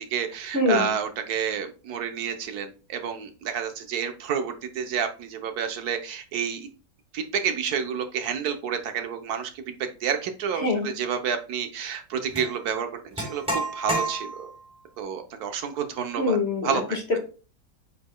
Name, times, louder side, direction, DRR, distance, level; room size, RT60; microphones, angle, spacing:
voice 1, 0.0-6.7 7.1-14.5 15.0-17.0, right 7 dB, 70° right, 7 dB, 1.3 m, -30 dB
voice 2, 0.5-0.9 10.6-10.9 16.2-17.2, left 2 dB, 40° left, 1 dB, 1.8 m, -24 dB
sound 1, 12.3-12.5 13.2-14.6, right 1 dB, 5° right, 3.0 m, -30 dB
8.3 x 5.1 x 2.2 m, 0.35 s
omnidirectional pair, 1.8 m